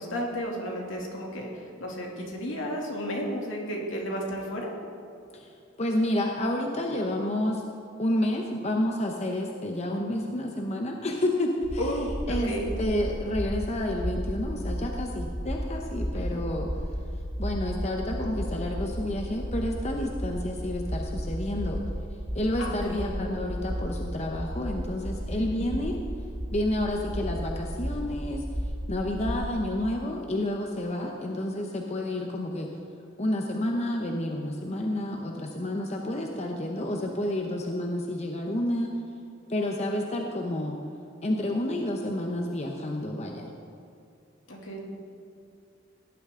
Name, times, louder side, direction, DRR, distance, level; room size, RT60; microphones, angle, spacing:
voice 1, 0.0-1.5 1.8-4.7 11.8-12.7 16.1-16.2 22.6-23.3 25.5-25.7 44.5-44.8, equal, 75° left, -1 dB, 2.6 m, -33 dB
voice 2, 5.3-7.6 8.0-21.8 22.3-25.9 26.5-32.7 33.2-38.9 39.5-40.8 41.2-43.5, left 1 dB, 35° left, 2 dB, 0.8 m, -30 dB
sound 1, 11.6-29.5, equal, 10° right, 1.3 m, -33 dB
17.0 x 11.5 x 3.8 m, 2.6 s
head